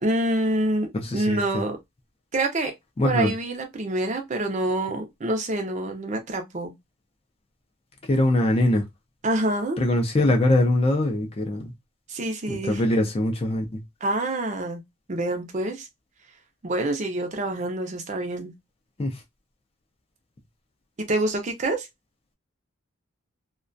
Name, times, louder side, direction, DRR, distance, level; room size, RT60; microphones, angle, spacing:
voice 1, 0.0-0.9 1.1-1.8 2.3-2.7 3.0-6.7 9.2-9.8 12.1-12.8 14.0-14.8 15.1-15.9 16.6-18.5 21.0-21.9, right 1 dB, 35° right, 0.5 m, -26 dB
voice 2, 0.9-1.6 3.0-3.3 8.1-8.8 9.8-11.7 12.5-13.8 19.0-19.1, left 1 dB, 25° left, 0.4 m, -22 dB
2.3 x 2.2 x 2.5 m
head